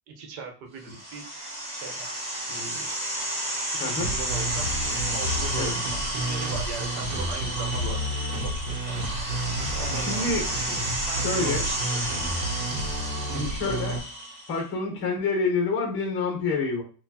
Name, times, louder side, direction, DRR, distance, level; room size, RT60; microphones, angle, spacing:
voice 1, 0.1-1.2 1.7-2.1 2.5-2.9 3.7-4.7 5.0-9.0 9.7-10.4 10.9-12.0 13.0-13.2, right 5 dB, 60° right, 3 dB, 1.1 m, -40 dB
sound 1, 0.8-14.6, right 1 dB, 20° right, 1.9 m, -32 dB
voice 2, 3.8-4.2 5.6-5.7 9.9-10.7 11.2-11.7 13.3-14.0 14.5-16.8, left 4 dB, 25° left, 1 dB, 0.9 m, -28 dB
sound 2, 4.0-14.0, right 1 dB, 80° right, 1.0 m, -31 dB
4.2 x 2.4 x 2.8 m, 0.38 s
supercardioid pair, 165°, 48 cm